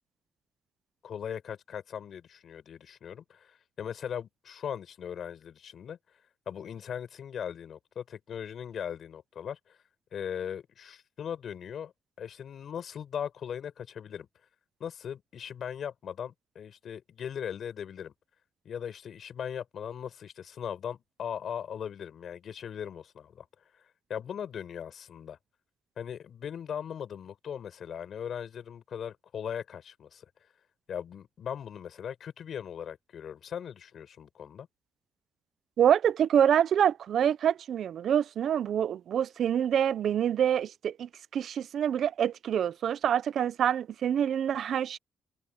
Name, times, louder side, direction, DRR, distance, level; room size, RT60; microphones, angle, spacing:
voice 1, 1.0-6.0 6.5-9.8 10.1-11.9 12.2-14.3 14.8-18.1 18.6-23.5 24.1-25.4 26.0-30.2 30.9-34.7, left 8 dB, 60° left, 6.5 m, -39 dB
voice 2, 35.8-45.0, right 9 dB, 65° right, 0.8 m, -26 dB
cardioid pair, 90°, 0 cm